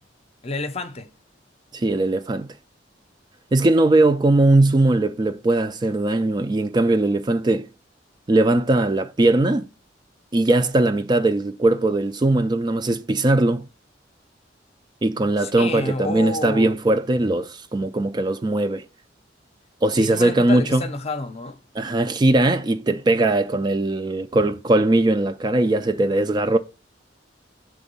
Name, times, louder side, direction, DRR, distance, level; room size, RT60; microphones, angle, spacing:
voice 1, 0.4-1.1 15.4-16.8 20.0-21.6, left 3 dB, 35° left, 0.7 m, -29 dB
voice 2, 1.7-2.5 3.5-7.7 8.3-9.7 10.3-13.7 15.0-18.8 19.8-20.8 21.8-26.6, right 2 dB, 25° right, 0.3 m, -20 dB
5.9 x 3.6 x 5.4 m
head